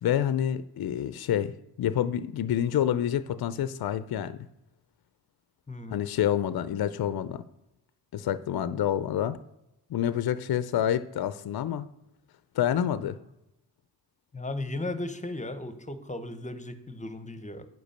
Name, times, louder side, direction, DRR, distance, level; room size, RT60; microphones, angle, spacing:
voice 1, 0.0-4.5 5.9-7.4 8.1-9.4 9.9-11.9 12.5-13.2, left 10 dB, 65° left, 14 dB, 0.5 m, -28 dB
voice 2, 5.7-6.1 14.3-17.7, left 2 dB, 20° left, 11 dB, 0.9 m, -36 dB
9.3 x 5.1 x 6.6 m, 0.90 s
cardioid pair, 80°, 39 cm